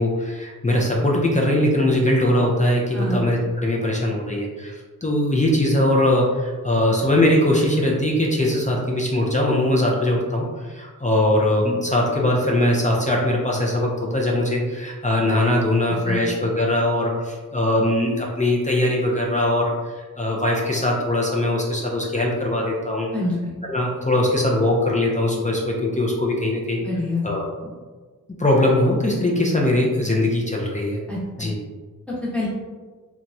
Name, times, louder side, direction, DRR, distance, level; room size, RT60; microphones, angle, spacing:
voice 1, 0.0-23.1 23.7-26.8 27.2-27.7 28.4-31.0 31.4-31.5, left 1 dB, 20° left, -3 dB, 0.4 m, -21 dB
voice 2, 23.1-23.6 26.8-27.2 31.1-31.5 32.2-32.5, left 2 dB, 5° left, -7 dB, 1.0 m, -26 dB
2.9 x 2.2 x 2.6 m, 1.4 s
wide cardioid pair, 60°, 36 cm